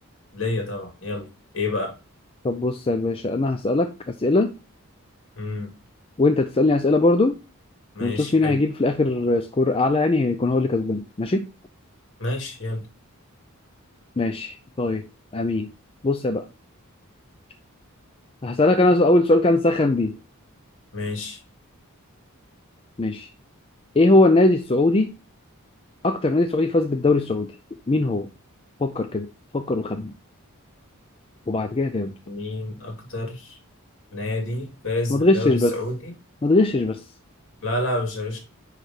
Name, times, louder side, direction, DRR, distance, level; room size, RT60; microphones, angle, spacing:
voice 1, 0.3-1.3 1.5-1.9 5.4-5.7 7.9-8.6 12.2-12.8 20.9-21.4 32.3-33.6 34.1-36.1 37.6-38.4, left 2 dB, 60° left, 2.6 m, -29 dB
voice 2, 2.4-4.5 6.2-7.4 8.0-11.5 14.2-15.0 15.3-15.7 16.0-16.5 18.4-20.1 23.0-23.3 24.0-25.1 26.0-27.5 27.9-28.3 28.8-29.3 29.5-30.1 31.5-32.1 35.1-35.7 36.4-37.0, left 2 dB, 25° left, 0.5 m, -20 dB
9.7 x 3.3 x 4.4 m
head